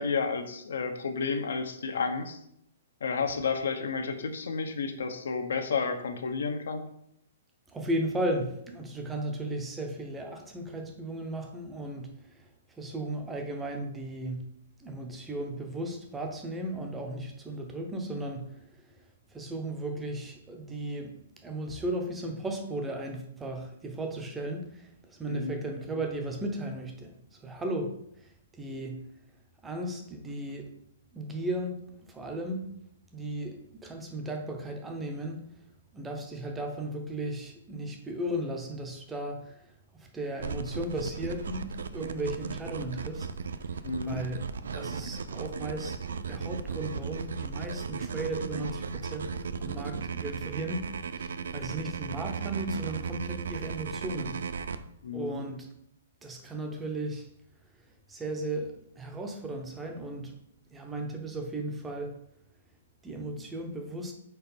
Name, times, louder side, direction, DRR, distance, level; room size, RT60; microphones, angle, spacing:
voice 1, 0.0-2.4 3.0-6.9 25.3-25.6 43.8-44.2 55.0-55.4, left 5 dB, 80° left, 7 dB, 0.9 m, -31 dB
voice 2, 7.7-14.5 14.8-19.0 19.3-29.1 29.6-30.7 31.1-31.8 32.1-32.7 33.1-35.4 35.9-43.3 44.0-50.9 51.2-54.5 55.1-55.7 56.2-57.3 58.1-60.4 60.7-62.2 63.0-64.1, right 1 dB, 5° right, 3 dB, 0.6 m, -36 dB
sound 1, 40.4-54.8, right 5 dB, 80° right, 0.5 m, -36 dB
4.6 x 4.2 x 5.3 m, 0.72 s
hypercardioid pair, 180°, 0 cm